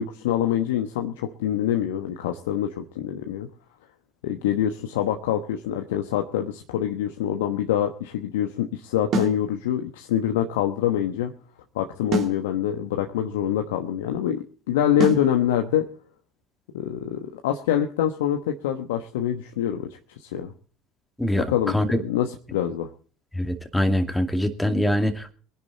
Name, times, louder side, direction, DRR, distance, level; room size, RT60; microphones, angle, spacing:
voice 1, 0.0-3.5 4.2-11.3 11.7-15.9 16.7-19.9 20.2-20.5 21.4-22.9, left 10 dB, 75° left, 5 dB, 1.1 m, -25 dB
sound 1, 9.1-9.4 12.1-12.4 15.0-15.3, right 3 dB, 50° right, 2.3 m, -25 dB
voice 2, 21.2-22.0 23.3-25.3, left 1 dB, 5° left, 6 dB, 2.4 m, -24 dB
23.5 x 10.5 x 4.1 m, 0.41 s
hypercardioid pair, 65°, 0 cm